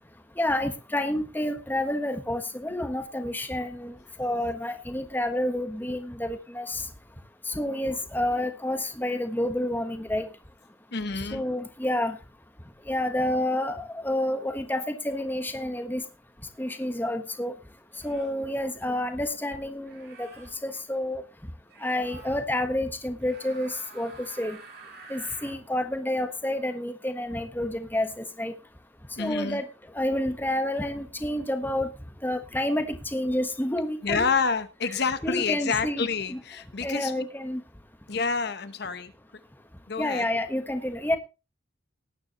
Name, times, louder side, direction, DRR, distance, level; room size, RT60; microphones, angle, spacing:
voice 1, 0.4-6.8 7.5-10.3 11.3-12.2 12.9-16.0 16.6-17.5 18.0-21.2 21.8-24.6 25.1-28.5 29.2-29.7 29.9-31.9 32.2-34.2 35.2-36.4 36.8-37.6 40.0-41.2, left 1 dB, 10° left, 7 dB, 1.3 m, -29 dB
voice 2, 10.9-11.4 29.2-29.6 34.0-37.3 38.1-39.1 39.9-40.3, left 5 dB, 55° left, 11 dB, 1.0 m, -28 dB
sound 1, 16.5-16.7 17.9-18.4 19.8-20.5 21.7-22.4 23.2-25.6, right 3 dB, 55° right, 5.8 m, -48 dB
18.5 x 9.5 x 3.0 m, 0.29 s
head